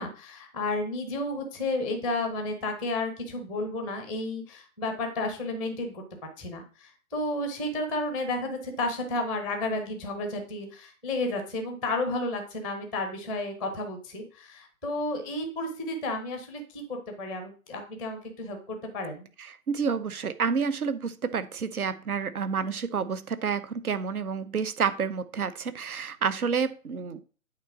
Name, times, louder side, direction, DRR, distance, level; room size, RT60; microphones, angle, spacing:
voice 1, 0.0-6.0 6.4-19.3, left 2 dB, ahead, 5 dB, 0.5 m, -32 dB
voice 2, 19.5-27.2, right 6 dB, 75° right, 13 dB, 1.1 m, -29 dB
8.6 x 4.1 x 5.8 m, 0.37 s
figure-of-eight pair, 130°, 44 cm